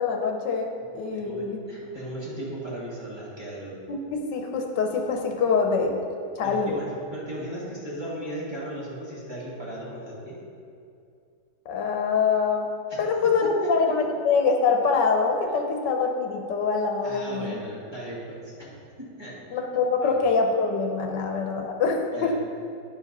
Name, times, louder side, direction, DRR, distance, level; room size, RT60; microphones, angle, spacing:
voice 1, 0.0-1.6 3.9-6.0 6.4-6.8 11.7-12.7 13.0-17.6 19.5-22.4, left 5 dB, 80° left, 3 dB, 1.5 m, -24 dB
voice 2, 0.8-3.8 6.4-10.4 12.9-13.1 13.4-13.9 17.0-18.8 19.2-19.3 20.0-20.1 22.1-22.4, right 1 dB, 15° right, -8 dB, 2.2 m, -37 dB
11.0 x 5.0 x 5.3 m, 2.5 s
omnidirectional pair, 1.9 m